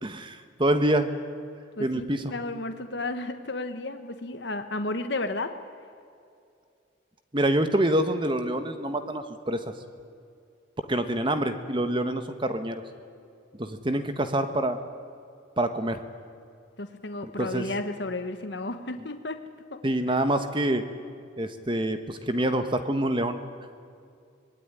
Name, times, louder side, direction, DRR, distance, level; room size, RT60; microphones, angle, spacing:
voice 1, 0.0-1.1 1.8-2.2 7.3-9.6 10.8-12.8 13.6-14.8 15.6-16.0 17.2-17.7 19.8-20.8 21.4-23.4, right 1 dB, 25° right, 9 dB, 1.3 m, -26 dB
voice 2, 1.8-5.5 16.8-19.4 19.7-19.8 20.1-20.2, left 2 dB, 60° left, 8 dB, 1.4 m, -33 dB
25.5 x 20.5 x 10.0 m, 2.4 s
head